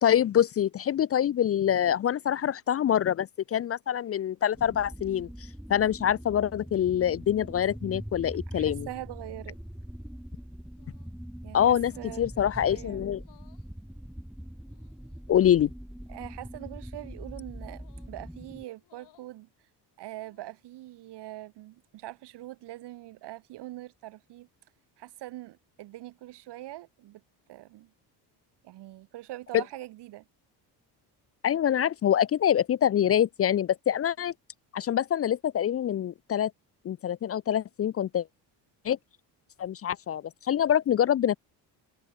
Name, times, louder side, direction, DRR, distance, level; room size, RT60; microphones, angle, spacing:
voice 1, 0.0-5.3 5.7-8.9 11.5-11.9 12.2-13.2 15.3-15.7 29.5-29.6 31.4-34.3 34.7-36.5 36.8-38.3 38.8-39.0 39.6-41.4, left 10 dB, 35° left, 0.5 m, -25 dB
sound 1, 4.5-18.6, equal, ahead, 4.0 m, -42 dB
voice 2, 8.5-9.6 11.4-13.0 16.1-19.5 20.0-24.5 25.0-27.2 27.5-27.9 28.6-30.2, right 16 dB, 75° right, 3.9 m, -43 dB
sound 2, 10.7-11.2 11.8-12.3 13.1-13.7 14.6-15.2 16.0-16.4 17.7-18.2 18.8-19.3 20.0-20.6, left 15 dB, 70° left, 5.0 m, -63 dB
cardioid pair, 140°, 41 cm